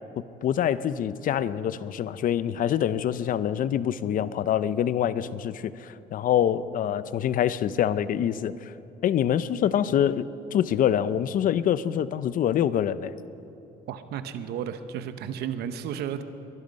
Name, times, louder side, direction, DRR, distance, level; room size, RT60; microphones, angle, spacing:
voice 1, 0.4-8.7 9.0-13.1, left 10 dB, 55° left, 15 dB, 0.6 m, -25 dB
voice 2, 13.9-16.2, right 9 dB, 75° right, 10 dB, 0.9 m, -33 dB
22.5 x 12.0 x 5.3 m, 3.0 s
cardioid pair, 110°, 17 cm